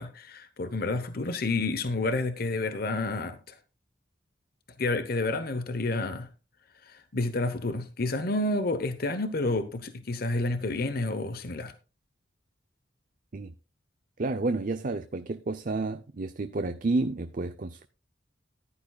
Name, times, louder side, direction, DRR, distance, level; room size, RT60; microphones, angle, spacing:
voice 1, 0.0-3.5 4.8-6.3 6.8-11.7, left 2 dB, 55° left, 0.9 m, -30 dB
voice 2, 14.2-17.9, right 3 dB, 45° right, 0.6 m, -30 dB
15.0 x 11.0 x 2.3 m
head